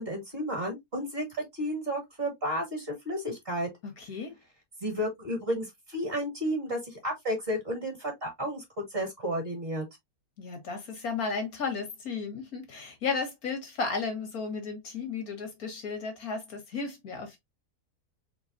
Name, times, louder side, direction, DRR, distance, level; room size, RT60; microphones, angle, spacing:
voice 1, 0.0-3.7 4.8-9.8, equal, 40° right, 2.5 m, -32 dB
voice 2, 3.8-4.3 10.4-17.4, left 4 dB, 75° left, 2.1 m, -34 dB
4.6 x 3.9 x 2.6 m
omnidirectional pair, 1.6 m